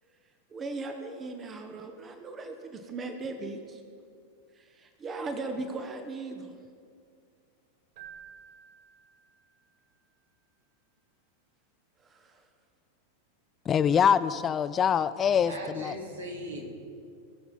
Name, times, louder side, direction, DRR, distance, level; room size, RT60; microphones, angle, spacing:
voice 1, 0.5-3.8 4.6-6.5 12.1-12.4, right 3 dB, 25° right, 6 dB, 0.9 m, -38 dB
Keyboard (musical), 8.0-9.8, right 8 dB, 50° right, 1.6 m, -51 dB
voice 2, 13.7-15.9, left 8 dB, 25° left, 15 dB, 0.3 m, -24 dB
voice 3, 14.9-16.7, equal, 70° right, -1 dB, 2.4 m, -40 dB
19.5 x 7.0 x 4.2 m, 2.3 s
figure-of-eight pair, 90°, 0 cm